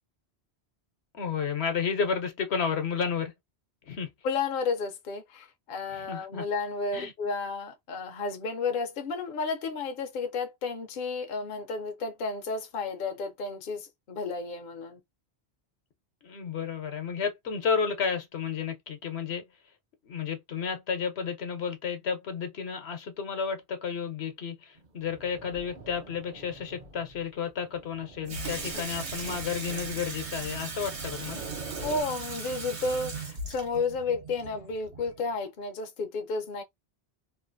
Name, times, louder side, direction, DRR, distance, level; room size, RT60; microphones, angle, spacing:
voice 1, 1.1-3.3 3.9-4.1 5.9-6.4 6.9-7.1 16.2-19.4 20.0-31.4, left 6 dB, 75° left, 1.1 m, -32 dB
voice 2, 4.2-15.0 28.7-28.8 31.8-36.6, left 4 dB, 55° left, 0.8 m, -32 dB
sound 1, 24.8-32.0, right 3 dB, 45° right, 0.8 m, -46 dB
Water tap faucet / Sink (filling or washing), 28.3-35.3, right 4 dB, 80° right, 1.4 m, -38 dB
3.1 x 2.5 x 2.6 m
omnidirectional pair, 1.1 m